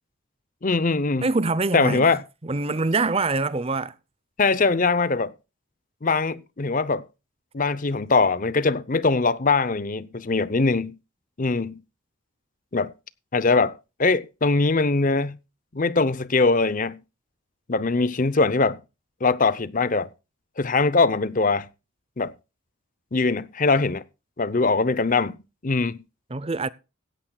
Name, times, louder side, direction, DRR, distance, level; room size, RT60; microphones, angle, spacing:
voice 1, 0.6-1.3 1.7-2.2 4.4-5.3 6.0-7.1 7.5-11.0 11.4-11.8 12.7-12.9 13.3-15.4 15.7-17.0 17.7-18.8 19.2-20.1 20.6-21.7 22.2-22.3 23.1-24.0 24.4-25.4 25.6-26.0, left 3 dB, 40° left, 0.7 m, -22 dB
voice 2, 1.2-3.9 26.3-26.7, right 3 dB, 25° right, 0.7 m, -25 dB
17.0 x 13.0 x 2.3 m
head